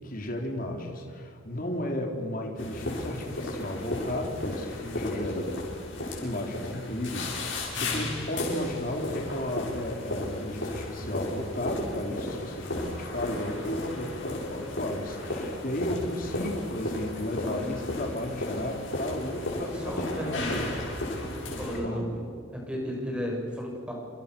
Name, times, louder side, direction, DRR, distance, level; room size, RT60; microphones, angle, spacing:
voice 1, 0.0-5.5 6.2-20.7 21.6-22.0, left 1 dB, 40° left, 1 dB, 3.9 m, -34 dB
sound 1, 2.6-21.8, left 1 dB, 60° left, 7.9 m, -34 dB
voice 2, 19.7-20.7 21.2-22.1 22.5-23.9, equal, 5° right, -1 dB, 7.4 m, -34 dB
29.5 x 28.0 x 7.0 m, 2.2 s
head